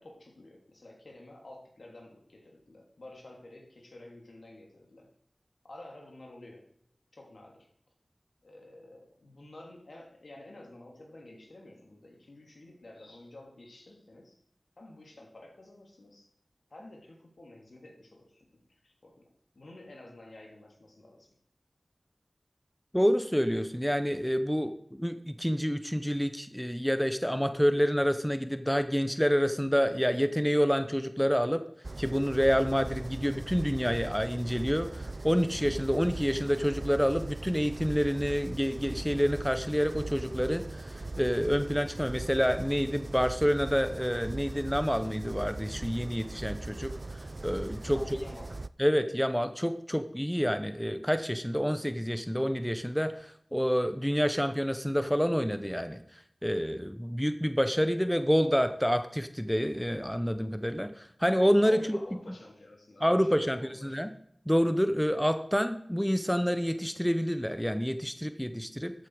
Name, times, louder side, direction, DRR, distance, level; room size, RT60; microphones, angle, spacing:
voice 1, 0.0-5.1 5.6-6.6 7.1-7.7 8.4-14.4 14.8-16.3 16.7-18.4 18.8-19.2 19.5-21.3 47.9-48.6 61.6-64.0, left 2 dB, 80° left, 0 dB, 2.8 m, -50 dB
voice 2, 22.9-31.6 32.0-46.9 47.4-48.0 48.8-56.0 56.4-62.0 63.0-64.1 64.5-68.9, equal, 5° left, 9 dB, 0.9 m, -28 dB
sound 1, 31.8-48.7, right 2 dB, 50° right, 0.4 m, -40 dB
13.5 x 8.5 x 4.8 m, 0.69 s
wide cardioid pair, 50°, 0 cm